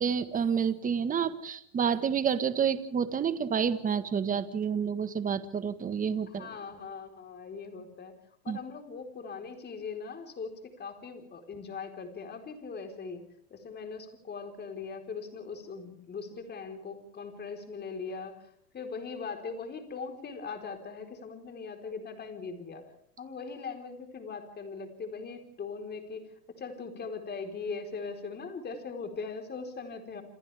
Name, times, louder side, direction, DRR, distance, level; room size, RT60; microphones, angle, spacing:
voice 1, 0.0-6.5 8.5-8.6, right 7 dB, 15° right, 11 dB, 1.5 m, -29 dB
voice 2, 6.3-8.1 8.4-13.2 13.5-22.9 23.2-26.2 26.6-30.2, left 5 dB, 20° left, 6 dB, 4.4 m, -40 dB
28.0 x 27.0 x 3.5 m, 0.68 s
supercardioid pair, 135°, 46 cm